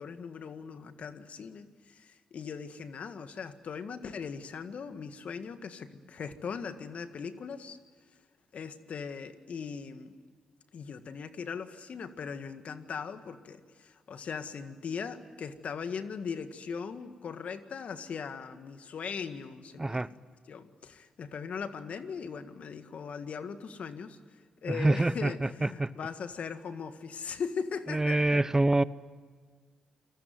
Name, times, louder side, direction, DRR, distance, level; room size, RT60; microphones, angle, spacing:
voice 1, 0.0-7.8 8.5-10.1 10.7-20.0 20.5-24.2 24.6-28.4, left 6 dB, 65° left, 10 dB, 1.8 m, -39 dB
voice 2, 19.8-20.1 24.7-25.9 27.9-28.8, right 2 dB, 20° right, 17 dB, 0.8 m, -26 dB
29.0 x 20.5 x 9.4 m, 1.6 s
hypercardioid pair, 45°, 2 cm